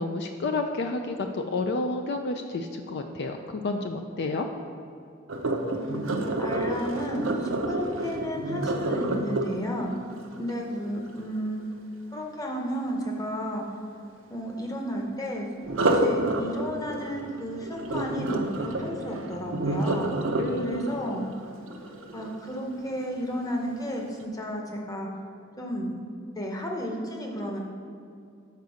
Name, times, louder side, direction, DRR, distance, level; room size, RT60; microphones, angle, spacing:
voice 1, 0.0-4.5 20.4-21.1, left 2 dB, 55° left, 5 dB, 0.4 m, -30 dB
Sink (filling or washing), 5.3-11.3 15.6-22.7 23.2-23.5 24.0-24.1, right 1 dB, 75° right, 0.6 m, -29 dB
voice 2, 5.6-9.9 10.4-11.6 12.1-13.6 14.3-15.5 15.9-20.1 20.6-21.3 22.1-25.1 25.6-25.9 26.4-27.6, equal, 20° left, 0 dB, 0.9 m, -33 dB
6.6 x 4.7 x 6.3 m, 2.5 s
head